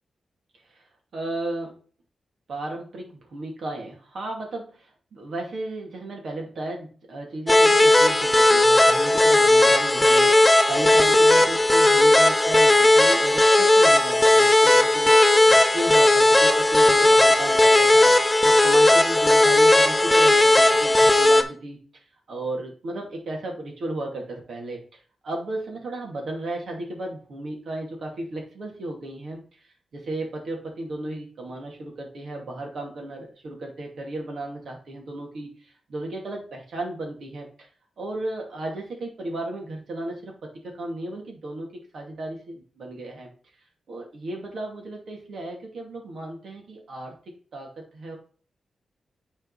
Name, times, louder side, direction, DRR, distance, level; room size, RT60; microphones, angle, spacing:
voice 1, 1.1-1.8 2.5-24.8 25.2-29.5 29.9-37.7 38.0-43.3 43.9-47.1 47.5-48.2, right 1 dB, 70° right, 0 dB, 2.6 m, -34 dB
sound 1, 7.5-21.4, left 2 dB, 15° left, 0.8 m, -16 dB
9.2 x 4.5 x 4.2 m, 0.41 s
cardioid pair, 80°, 0 cm